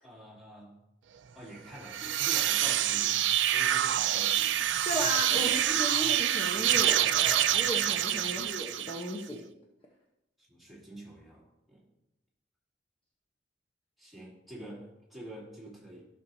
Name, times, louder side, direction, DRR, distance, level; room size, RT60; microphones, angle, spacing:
voice 1, 0.0-0.8 1.3-4.4 5.3-5.6 8.2-8.5 10.5-11.8 14.0-16.1, right 1 dB, ahead, -6 dB, 2.5 m, -47 dB
sound 1, 1.8-9.2, right 11 dB, 80° right, 0.4 m, -27 dB
voice 2, 4.8-9.4, equal, 30° left, -2 dB, 0.9 m, -35 dB
14.5 x 6.2 x 2.7 m, 0.89 s
head